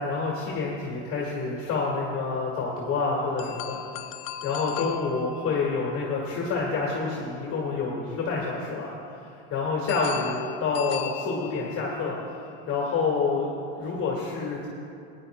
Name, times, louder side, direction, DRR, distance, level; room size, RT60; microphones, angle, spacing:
voice 1, 0.0-4.0 4.4-12.2 12.7-14.7, left 4 dB, 35° left, -4 dB, 1.8 m, -28 dB
sound 1, 3.4-7.5 9.9-12.2, left 10 dB, 75° left, 0.6 m, -39 dB
21.0 x 10.5 x 2.2 m, 2.6 s
supercardioid pair, 145°, 38 cm